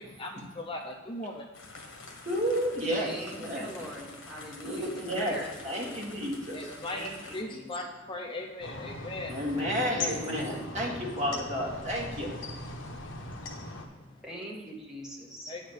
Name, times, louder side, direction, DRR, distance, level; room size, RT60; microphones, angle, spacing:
voice 1, 0.0-1.5 6.5-9.4 13.5-14.1 15.5-15.6, left 1 dB, 25° left, 0 dB, 0.6 m, -39 dB
sound 1, 1.5-7.4, left 3 dB, 80° left, 1.4 m, -47 dB
voice 2, 2.3-3.7 4.6-5.4 5.6-6.7 9.3-12.3, equal, 35° right, -4 dB, 2.1 m, -31 dB
voice 3, 2.9-5.5 6.8-7.7 9.8-10.5 14.2-15.5, equal, 5° right, -3 dB, 1.4 m, -42 dB
sound 2, 8.6-13.9, left 2 dB, 65° left, 1.2 m, -39 dB
9.0 x 4.4 x 6.6 m, 1.3 s
head